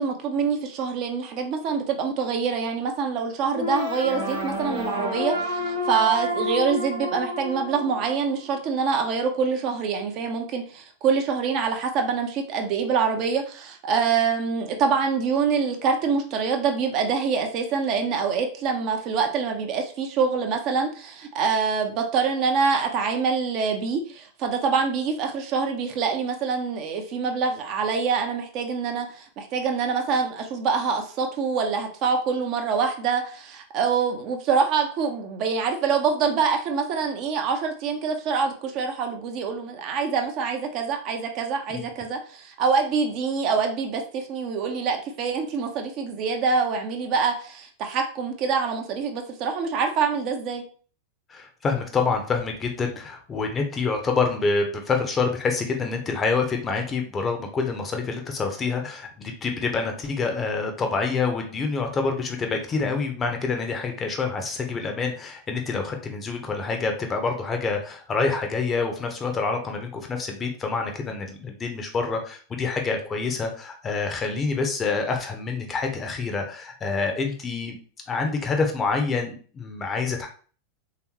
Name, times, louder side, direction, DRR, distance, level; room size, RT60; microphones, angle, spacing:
voice 1, 0.0-50.6, right 5 dB, 40° right, 4 dB, 0.6 m, -25 dB
sound 1, 3.5-8.6, left 1 dB, 75° right, 1.0 m, -30 dB
voice 2, 51.3-77.8 78.1-80.3, left 4 dB, 20° left, 4 dB, 0.7 m, -27 dB
3.4 x 2.9 x 3.0 m, 0.41 s
figure-of-eight pair, 90°, 0 cm